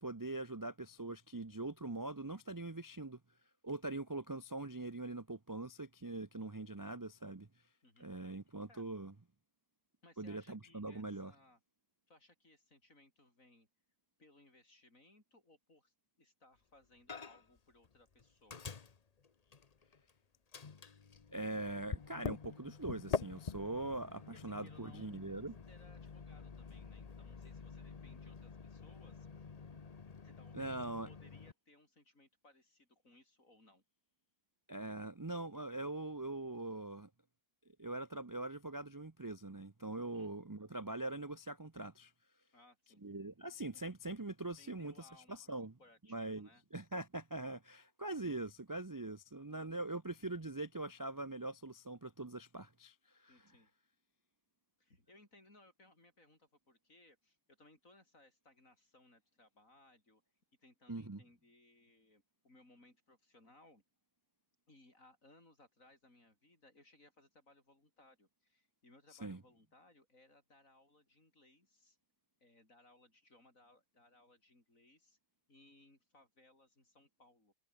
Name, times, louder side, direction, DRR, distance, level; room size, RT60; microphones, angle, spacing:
voice 1, 0.0-3.2 3.6-7.5 8.0-9.1 10.2-11.3 21.3-25.6 30.5-31.1 34.7-37.1 37.8-42.1 43.0-45.7 46.1-53.3 60.9-61.2 69.2-69.4, right 2 dB, 20° right, 0.5 m, -42 dB
voice 2, 7.8-8.4 8.7-8.9 10.0-11.6 12.1-13.7 14.2-18.7 24.3-25.1 25.7-29.5 30.2-30.8 31.0-33.8 40.1-40.3 42.5-43.0 44.6-46.6 49.5-49.9 53.3-53.7 54.8-60.2 60.6-63.8 64.7-72.0 72.4-75.2 75.5-77.5, left 2 dB, 55° left, 7.3 m, -65 dB
Microwave oven, 17.1-17.6 17.8-20.1 20.5-31.5, left 5 dB, 30° left, 0.8 m, -46 dB
omnidirectional pair, 1.7 m